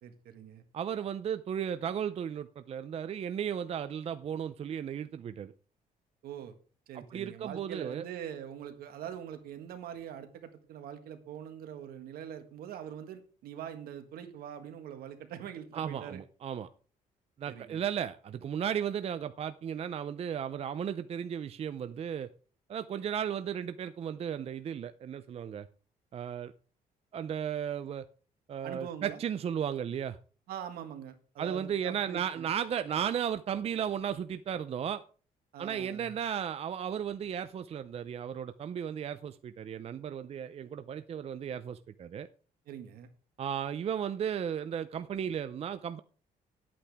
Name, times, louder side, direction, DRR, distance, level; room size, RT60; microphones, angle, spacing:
voice 1, 0.0-0.6 6.2-6.5 6.9-16.2 17.5-17.8 28.6-29.2 30.5-32.5 35.5-36.1 42.7-43.1, right 9 dB, 80° right, 7 dB, 1.8 m, -43 dB
voice 2, 0.7-5.5 6.9-8.1 15.7-16.7 17.4-22.3 22.7-25.7 26.1-26.5 27.1-28.0 28.5-30.2 31.4-35.0 35.6-42.3 43.4-46.0, right 8 dB, 40° right, 11 dB, 0.5 m, -35 dB
12.0 x 8.6 x 3.5 m, 0.39 s
cardioid pair, 115°, 15 cm